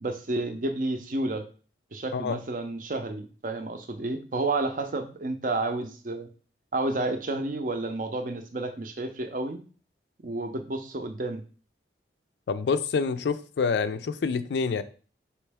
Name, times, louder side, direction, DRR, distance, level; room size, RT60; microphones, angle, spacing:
voice 1, 0.0-1.4 1.9-6.3 6.7-9.6 10.2-11.4, right 2 dB, 45° right, 7 dB, 0.5 m, -30 dB
voice 2, 12.5-14.8, left 5 dB, 75° left, 12 dB, 0.4 m, -27 dB
4.4 x 3.1 x 3.4 m, 0.39 s
head